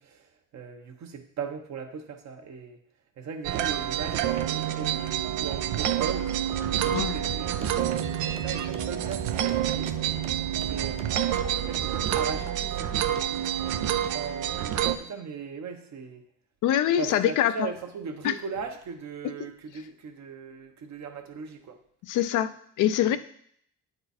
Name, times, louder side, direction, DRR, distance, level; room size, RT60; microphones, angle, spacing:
voice 1, 0.0-2.8 3.2-9.9 10.6-11.1 11.7-13.5 14.1-16.2 17.0-21.8, right 5 dB, 65° right, 4 dB, 1.2 m, -38 dB
sound 1, 3.4-15.0, right 11 dB, 85° right, 0.6 m, -28 dB
sound 2, 6.5-12.5, right 3 dB, 20° right, 0.7 m, -41 dB
voice 2, 16.6-17.5 18.2-18.3 19.4-19.5 22.0-23.2, left 11 dB, 85° left, 11 dB, 0.6 m, -24 dB
9.5 x 4.4 x 4.2 m, 0.66 s
cardioid pair, 90°, 30 cm